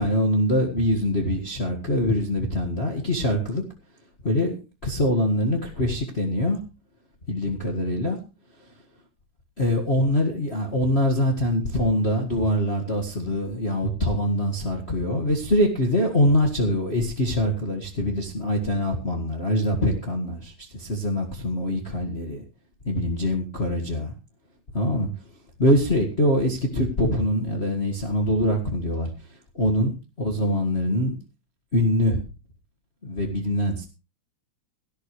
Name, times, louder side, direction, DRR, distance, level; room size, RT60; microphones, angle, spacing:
voice 1, 0.0-3.6 4.2-6.6 7.3-8.2 8.6-8.7 9.6-22.4 22.8-24.1 24.7-25.1 25.6-31.1 31.7-32.2 33.0-33.8, left 1 dB, 30° left, 1 dB, 1.1 m, -24 dB
17.0 x 13.0 x 3.2 m, 0.30 s
omnidirectional pair, 3.9 m